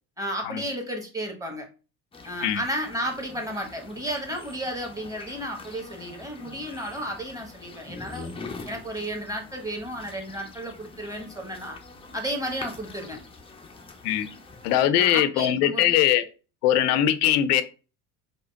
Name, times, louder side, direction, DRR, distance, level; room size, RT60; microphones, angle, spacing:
voice 1, 0.2-1.7 2.2-8.3 8.6-11.8 12.1-13.2 15.0-16.0, right 1 dB, 5° right, 1.1 m, -33 dB
sound 1, 2.1-14.9, left 3 dB, 10° left, 0.5 m, -44 dB
voice 2, 14.6-16.2 16.6-17.6, left 11 dB, 70° left, 0.6 m, -21 dB
5.1 x 2.1 x 2.3 m
hypercardioid pair, 65°, 48 cm